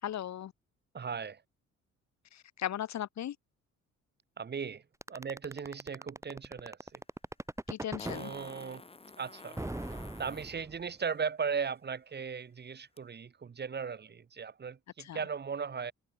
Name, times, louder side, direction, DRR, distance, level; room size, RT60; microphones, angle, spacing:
voice 1, 0.0-0.5 2.3-3.4 7.7-8.3 15.0-15.2, left 11 dB, 65° left, 1.9 m, -37 dB
voice 2, 0.9-1.4 4.4-4.8 5.1-7.0 8.1-8.8 9.2-9.6 10.2-15.9, right 6 dB, 35° right, 1.2 m, -37 dB
sound 1, 5.0-8.2 9.6-11.0, right 1 dB, 10° right, 2.2 m, -39 dB
Fart, 6.9-7.0 8.0-10.5 13.0-13.1, left 3 dB, 20° left, 1.9 m, -49 dB
cardioid pair, 90°, 30 cm